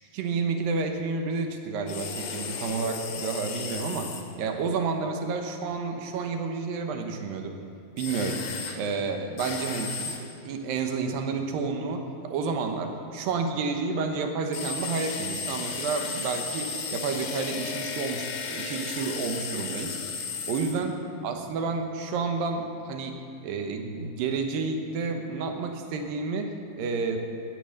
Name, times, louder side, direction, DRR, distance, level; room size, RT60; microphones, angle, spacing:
voice 1, 0.1-4.1 4.4-7.5 8.0-8.4 8.7-20.0 20.4-20.9 21.2-27.2, right 4 dB, 70° right, 4 dB, 2.4 m, -30 dB
sound 1, 1.9-4.2 8.0-8.8 9.4-10.2 14.5-20.8, left 5 dB, 75° left, 1.5 m, -34 dB
16.0 x 11.0 x 6.5 m, 2.6 s
omnidirectional pair, 5.1 m